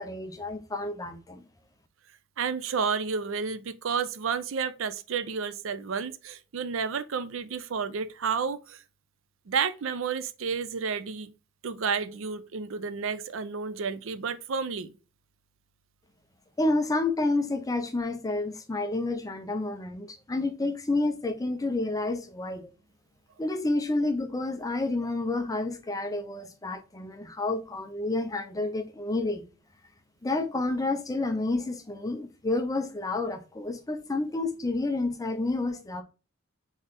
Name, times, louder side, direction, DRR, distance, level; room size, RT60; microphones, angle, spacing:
voice 1, 0.0-1.4 16.6-22.7 23.4-29.4 30.2-36.0, left 2 dB, 15° left, 0.6 m, -29 dB
voice 2, 2.4-8.8 9.5-11.3 11.6-14.9, right 6 dB, 70° right, 0.5 m, -31 dB
4.1 x 3.8 x 3.4 m
head